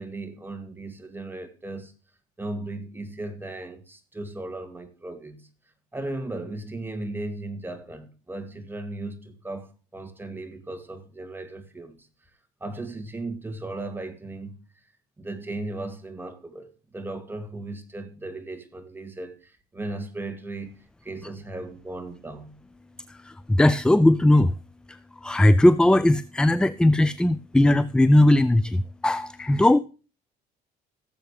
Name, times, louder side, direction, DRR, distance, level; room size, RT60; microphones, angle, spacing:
voice 1, 0.0-1.9 2.4-5.5 5.9-12.1 12.6-14.6 15.2-22.6, right 2 dB, 10° right, 2.3 m, -36 dB
voice 2, 23.1-24.5 24.9-25.0 25.2-29.8, left 1 dB, 5° left, 0.4 m, -19 dB
17.5 x 7.7 x 3.3 m
cardioid pair, 110°, 17 cm